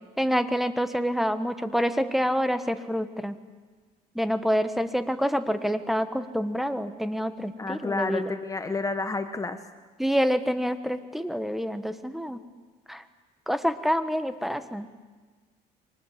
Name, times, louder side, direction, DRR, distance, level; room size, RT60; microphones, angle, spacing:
voice 1, 0.2-3.3 4.1-8.3 10.0-12.4 12.9-13.0 13.5-14.9, equal, ahead, 10 dB, 1.5 m, -27 dB
voice 2, 7.6-9.6, left 3 dB, 20° left, 9 dB, 1.2 m, -30 dB
29.5 x 24.0 x 7.6 m, 1.4 s
cardioid pair, 110°, 17 cm